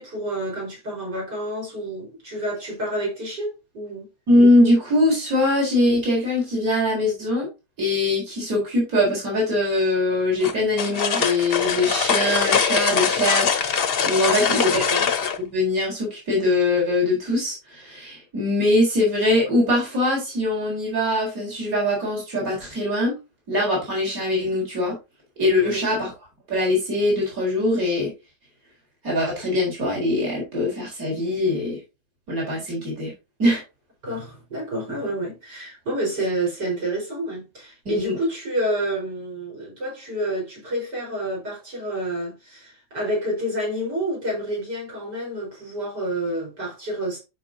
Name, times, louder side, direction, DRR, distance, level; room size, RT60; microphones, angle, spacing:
voice 1, 0.0-4.1 14.4-15.0 25.6-25.9 34.0-47.2, right 1 dB, 80° right, 5.4 m, -29 dB
voice 2, 4.3-7.5 7.8-15.1 15.4-23.1 23.5-25.0 25.4-26.1 26.5-28.1 29.0-31.8 32.3-33.1 33.4-33.6 37.9-38.2, left 1 dB, 55° right, 4.7 m, -22 dB
sound 1, 10.4-15.4, left 6 dB, 45° left, 0.8 m, -22 dB
11.0 x 6.0 x 2.8 m
omnidirectional pair, 1.8 m